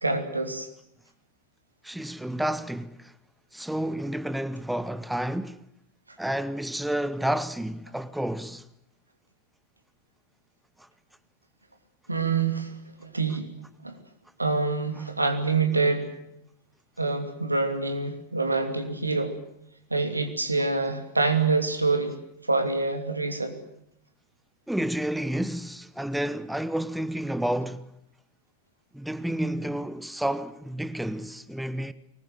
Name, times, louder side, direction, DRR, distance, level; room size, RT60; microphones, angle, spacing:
voice 1, 0.0-0.7 12.1-12.7 13.0-13.5 13.8-14.0 14.4-16.1 17.0-19.4 19.9-23.6, right 3 dB, 80° right, 2.8 m, -26 dB
voice 2, 1.8-3.1 3.5-5.6 6.2-8.6 24.7-27.9 28.9-31.9, right 1 dB, 5° right, 0.9 m, -30 dB
23.5 x 20.0 x 9.5 m
figure-of-eight pair, 90°, 0 cm